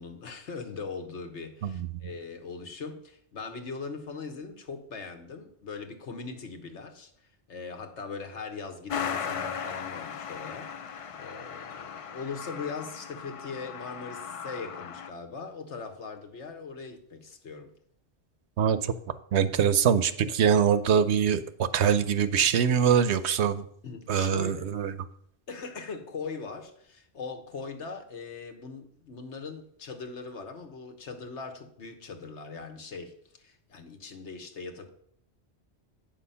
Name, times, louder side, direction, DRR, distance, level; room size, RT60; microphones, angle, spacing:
voice 1, 0.0-7.1 7.5-17.7 23.8-24.7 25.5-34.9, left 4 dB, 80° left, 1.5 m, -40 dB
Truck, 8.9-15.1, left 7 dB, 55° left, 0.3 m, -37 dB
voice 2, 18.6-18.9 19.3-23.6 24.1-25.0, right 8 dB, 75° right, 0.9 m, -23 dB
9.0 x 6.2 x 5.6 m
omnidirectional pair, 1.2 m